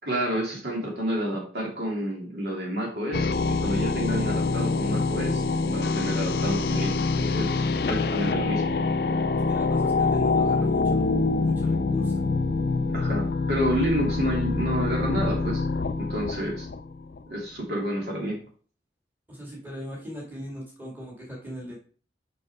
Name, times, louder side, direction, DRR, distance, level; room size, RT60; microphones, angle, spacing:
voice 1, 0.0-3.3 3.6-8.6 12.9-15.6 16.0-16.7 17.3-18.4, equal, 65° right, -1 dB, 2.9 m, -29 dB
sound 1, 3.1-17.2, left 3 dB, 60° left, 0.4 m, -25 dB
voice 2, 9.5-11.1 11.4-12.2 19.3-21.8, equal, 10° right, -3 dB, 2.1 m, -39 dB
6.4 x 5.7 x 4.8 m, 0.42 s
head